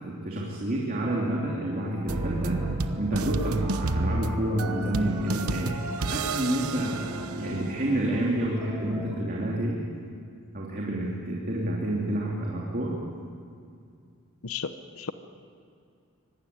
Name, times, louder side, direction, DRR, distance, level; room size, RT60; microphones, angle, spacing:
voice 1, 0.0-2.6 3.0-5.7 6.1-9.8 10.5-12.9, right 1 dB, 40° right, -3 dB, 2.9 m, -29 dB
sound 1, 1.0-9.2, right 1 dB, 15° right, 3.5 m, -43 dB
sound 2, 2.1-7.9, right 2 dB, 85° right, 1.0 m, -31 dB
voice 2, 14.4-15.1, left 5 dB, 75° left, 10 dB, 0.9 m, -34 dB
24.5 x 18.5 x 9.6 m, 2.3 s
head